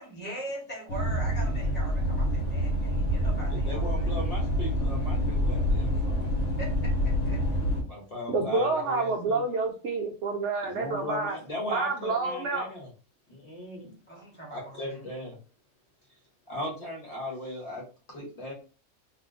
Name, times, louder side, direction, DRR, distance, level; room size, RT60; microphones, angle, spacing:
voice 1, 0.0-4.1 6.6-7.4 14.1-15.0, right 1 dB, 5° left, -4 dB, 1.3 m, -41 dB
sound 1, 0.9-7.8, equal, 60° left, 1.0 m, -27 dB
voice 2, 3.5-6.3 7.9-9.4 10.6-12.9 13.3-13.9 14.5-15.4 16.5-17.8 18.1-18.5, left 1 dB, 25° left, -2 dB, 1.2 m, -37 dB
voice 3, 8.3-11.4 11.7-12.7, right 3 dB, 65° right, 2 dB, 0.7 m, -28 dB
2.7 x 2.4 x 3.8 m, 0.36 s
omnidirectional pair, 1.7 m